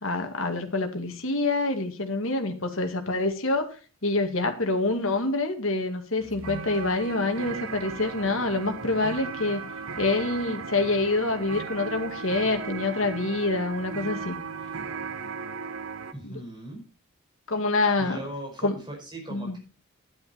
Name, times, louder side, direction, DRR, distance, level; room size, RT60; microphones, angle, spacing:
voice 1, 0.0-3.8 4.0-9.6 10.0-14.4 16.2-16.4 17.5-18.2 18.6-18.8 19.3-19.6, left 2 dB, 60° left, 5 dB, 2.1 m, -26 dB
sound 1, 6.2-16.1, right 5 dB, 70° right, 1.0 m, -36 dB
voice 2, 16.1-16.8 18.0-19.6, right 1 dB, 20° right, 0 dB, 4.9 m, -39 dB
12.0 x 11.0 x 4.3 m, 0.34 s
head